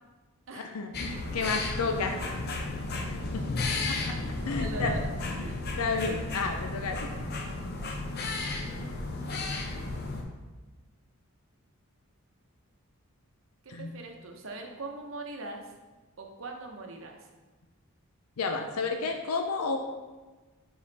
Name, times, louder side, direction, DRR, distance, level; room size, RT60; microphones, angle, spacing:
voice 1, 0.7-2.2 3.3-3.4 3.9-4.0 4.4-4.9 5.4-5.5 5.8-7.1 13.7-13.9 18.4-19.8, left 4 dB, 85° left, 4 dB, 0.5 m, -31 dB
sound 1, 0.9-10.2, left 2 dB, 45° left, 0.7 m, -33 dB
voice 2, 4.2-5.1 5.4-5.6 8.5-9.0 13.6-15.7 16.2-17.3, right 2 dB, 60° right, 3 dB, 0.8 m, -41 dB
5.3 x 4.9 x 4.0 m, 1.3 s
head